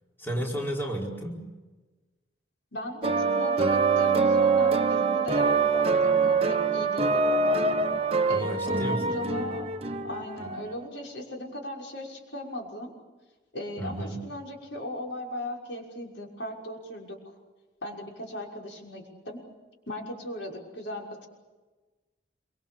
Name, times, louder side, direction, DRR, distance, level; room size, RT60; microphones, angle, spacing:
voice 1, 0.2-1.4 8.3-9.2 13.8-14.2, right 1 dB, 10° left, -2 dB, 4.8 m, -32 dB
voice 2, 2.7-7.7 8.3-9.7 10.0-12.9 13.5-17.2 17.8-19.4 19.9-21.3, left 1 dB, 85° left, 0 dB, 6.1 m, -38 dB
sound 1, 3.0-10.6, right 4 dB, 30° right, 1.2 m, -24 dB
27.5 x 25.0 x 7.2 m, 1.2 s
head